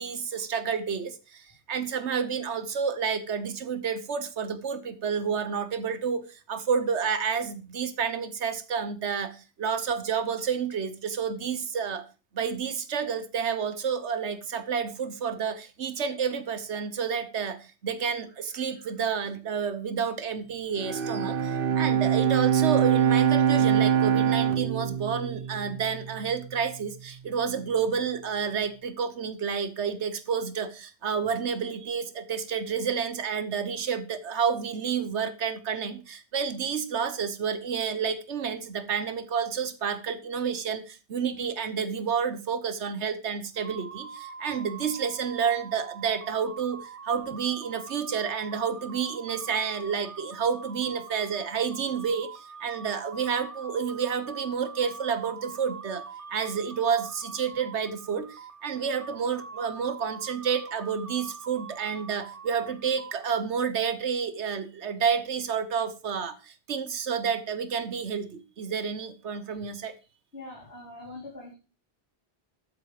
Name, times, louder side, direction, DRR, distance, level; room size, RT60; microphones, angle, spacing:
voice 1, 0.0-12.0 12.3-69.9, right 6 dB, 90° right, 12 dB, 1.4 m, -30 dB
Bowed string instrument, 20.8-26.3, right 9 dB, 60° right, 1.0 m, -24 dB
sound 1, 43.6-63.3, right 5 dB, 35° right, 1.1 m, -44 dB
voice 2, 70.3-71.6, left 2 dB, 65° left, -5 dB, 4.3 m, -42 dB
13.0 x 7.8 x 4.9 m, 0.32 s
omnidirectional pair, 1.1 m